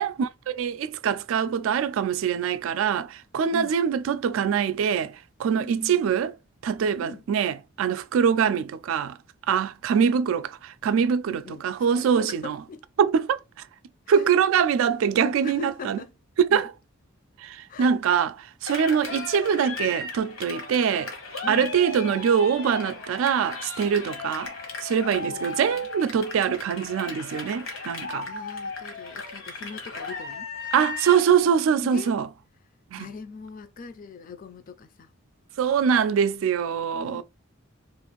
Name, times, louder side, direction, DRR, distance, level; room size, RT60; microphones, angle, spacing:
voice 1, 0.0-6.3 6.6-9.2 9.5-12.6 13.0-13.4 14.1-16.0 16.4-16.7 17.4-18.3 18.6-21.1 21.5-24.5 24.8-28.3 30.7-32.3 32.9-33.1 35.6-37.2, right 7 dB, 75° right, 0.3 m, -23 dB
voice 2, 5.6-6.0 7.0-7.2 11.3-12.8 14.1-14.3 15.2-16.1 16.5-16.7 17.7-17.9 21.4-21.8 25.3-25.9 28.2-30.5 31.8-32.1 33.0-35.1 36.9-37.2, left 4 dB, 40° left, 0.4 m, -41 dB
Cheering, 18.7-31.3, left 3 dB, 70° left, 0.9 m, -36 dB
2.5 x 2.5 x 3.0 m
head